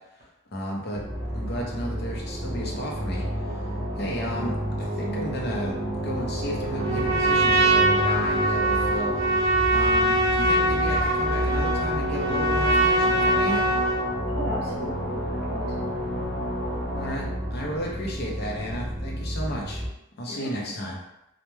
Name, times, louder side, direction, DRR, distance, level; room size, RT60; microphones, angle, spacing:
voice 1, 0.5-1.0 1.3-3.7 4.0-5.7 6.0-9.2 9.7-13.6 16.9-19.8 20.2-21.0, equal, 55° left, -1 dB, 0.6 m, -33 dB
sound 1, 0.9-19.9, equal, 20° right, 0.5 m, -33 dB
sound 2, 1.0-19.2, equal, 75° left, 0.8 m, -33 dB
Trumpet, 6.8-14.1, right 1 dB, 80° right, 0.5 m, -23 dB
voice 2, 14.3-15.9 20.2-20.8, equal, 50° right, -5 dB, 0.8 m, -36 dB
2.1 x 2.1 x 3.1 m, 0.85 s
head